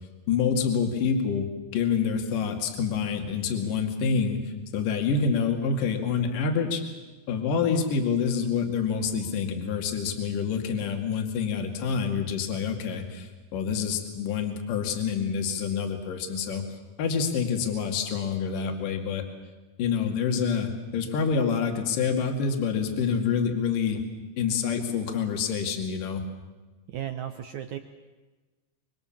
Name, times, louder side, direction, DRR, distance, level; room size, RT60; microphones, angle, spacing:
voice 1, 0.3-1.5 1.7-6.8 7.3-16.6 17.0-19.2 19.8-24.0 24.4-26.2, left 6 dB, 60° left, 4 dB, 3.7 m, -27 dB
voice 2, 26.9-27.8, right 11 dB, 75° right, 7 dB, 1.7 m, -35 dB
26.5 x 24.0 x 7.3 m, 1.2 s
omnidirectional pair, 4.6 m